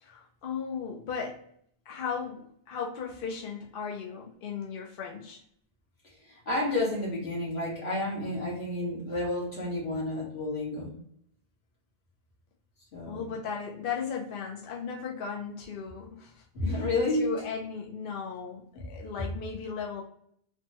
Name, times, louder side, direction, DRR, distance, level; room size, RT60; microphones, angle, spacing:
voice 1, 0.0-1.4 1.9-5.4 13.1-16.8 17.2-20.0, left 6 dB, 65° left, -1 dB, 0.7 m, -36 dB
voice 2, 6.2-10.9 12.9-13.3 16.5-17.3 18.7-18.8, left 2 dB, 80° left, -4 dB, 1.5 m, -30 dB
3.4 x 2.1 x 2.9 m, 0.66 s
omnidirectional pair, 1.1 m